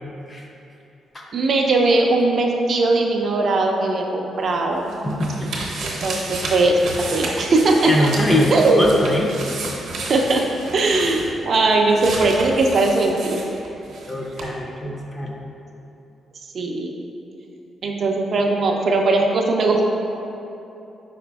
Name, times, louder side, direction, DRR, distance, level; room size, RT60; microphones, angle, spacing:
voice 1, 1.3-4.9 5.8-6.8 7.1-8.1 8.5-8.9 10.1-10.4 10.7-13.4 16.5-17.0 17.8-19.8, right 2 dB, 45° right, 1 dB, 0.3 m, -19 dB
sound 1, 4.5-14.1 14.4-14.5, right 2 dB, 70° right, 0.7 m, -32 dB
voice 2, 5.0-5.5 7.9-9.3 14.1-15.5, left 1 dB, 20° left, -1 dB, 0.4 m, -22 dB
4.9 x 4.8 x 2.3 m, 2.8 s
wide cardioid pair, 170°, 0 cm